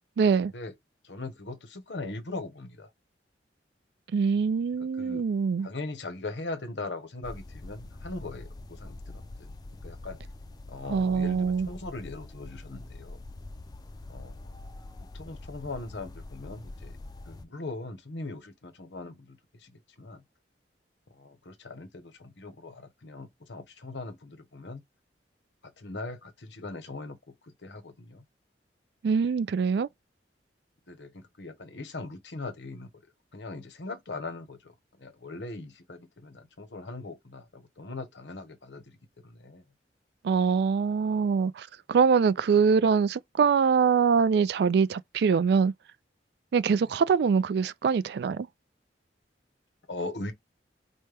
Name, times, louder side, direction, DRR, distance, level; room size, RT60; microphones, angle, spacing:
voice 1, 0.2-0.5 4.1-5.7 10.9-11.7 29.0-29.9 40.2-45.7 46.5-48.5, right 6 dB, 65° right, 0.3 m, -24 dB
voice 2, 1.0-2.9 5.0-5.3 5.6-9.5 9.8-10.2 10.7-13.2 14.1-14.4 15.1-17.0 17.3-20.2 21.1-24.8 25.8-27.2 27.6-28.2 30.9-32.9 33.3-34.7 35.0-39.0 39.2-39.6 46.7-46.8 49.9-50.3, left 2 dB, 85° left, 1.0 m, -40 dB
sound 1, 7.2-17.4, left 2 dB, 20° left, 0.4 m, -44 dB
4.4 x 2.2 x 3.3 m
head